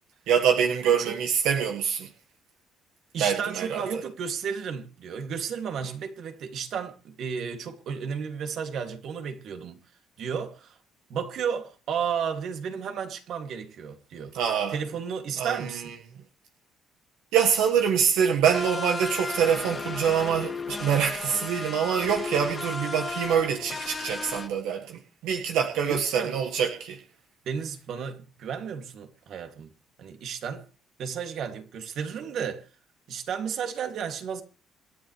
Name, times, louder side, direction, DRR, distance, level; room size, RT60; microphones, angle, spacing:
voice 1, 0.3-2.1 3.2-3.8 14.3-14.8 15.4-15.8 17.3-27.0, right 7 dB, 85° right, 1.6 m, -25 dB
voice 2, 3.1-9.8 10.2-10.8 11.1-14.3 14.7-15.9 25.9-26.3 27.5-29.7 30.0-30.6 31.0-32.7 33.1-34.4, right 7 dB, 65° right, 2.4 m, -33 dB
sound 1, 18.5-24.5, left 4 dB, 30° left, 2.1 m, -34 dB
26.5 x 10.5 x 3.3 m
cardioid pair, 100°, 0 cm